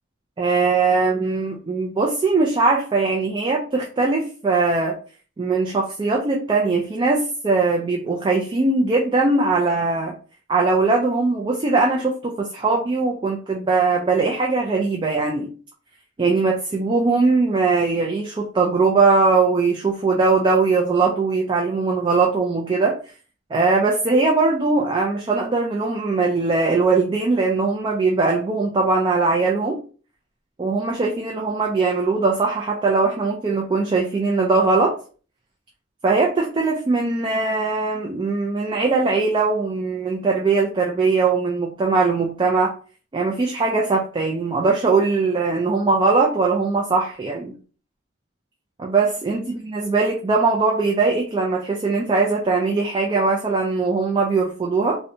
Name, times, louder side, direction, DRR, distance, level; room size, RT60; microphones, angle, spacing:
voice 1, 0.4-5.0 5.4-10.1 10.5-15.5 16.2-23.0 23.5-29.8 30.6-34.9 36.0-42.7 43.1-47.5 48.8-55.0, right 3 dB, 25° right, -1 dB, 0.3 m, -20 dB
2.7 x 2.1 x 2.6 m, 0.39 s
head